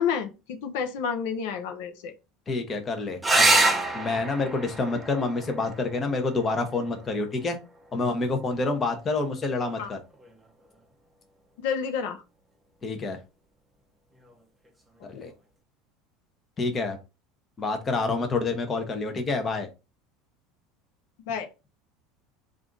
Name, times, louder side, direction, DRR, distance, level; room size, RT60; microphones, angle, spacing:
voice 1, 0.0-2.1 9.8-9.9 11.6-12.2 21.3-21.5, left 7 dB, 80° left, 6 dB, 0.6 m, -29 dB
voice 2, 2.5-3.6 3.9-7.6 7.9-10.0 12.8-13.2 15.0-15.3 16.6-17.0 17.6-19.7, left 3 dB, 25° left, 5 dB, 0.8 m, -28 dB
sound 1, 3.2-8.2 10.1-10.8 14.2-14.3 14.7-14.8, right 2 dB, 10° right, 0.6 m, -27 dB
3.4 x 2.5 x 3.8 m, 0.28 s
supercardioid pair, 130°, 0 cm